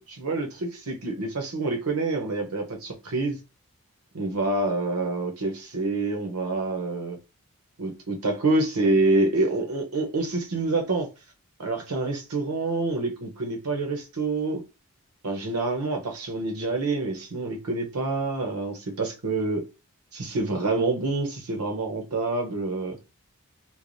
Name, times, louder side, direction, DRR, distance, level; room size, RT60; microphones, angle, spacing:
voice 1, 0.0-3.4 4.1-7.2 7.8-11.1 11.6-14.6 15.2-19.6 20.1-23.0, right 2 dB, 85° right, 0.8 m, -27 dB
3.2 x 2.0 x 2.5 m
head